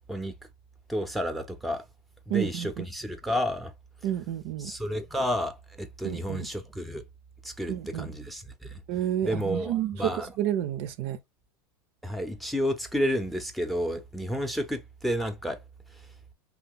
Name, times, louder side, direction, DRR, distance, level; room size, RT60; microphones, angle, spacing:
voice 1, 0.9-1.8 2.3-3.7 4.6-7.0 7.4-8.8 9.2-10.3 12.0-15.6, equal, ahead, 0.6 m, -31 dB
voice 2, 2.3-2.9 4.0-4.7 6.0-6.5 7.7-8.1 8.9-11.2, right 11 dB, 55° right, 0.5 m, -30 dB
2.8 x 2.2 x 3.6 m
supercardioid pair, 130°, 12 cm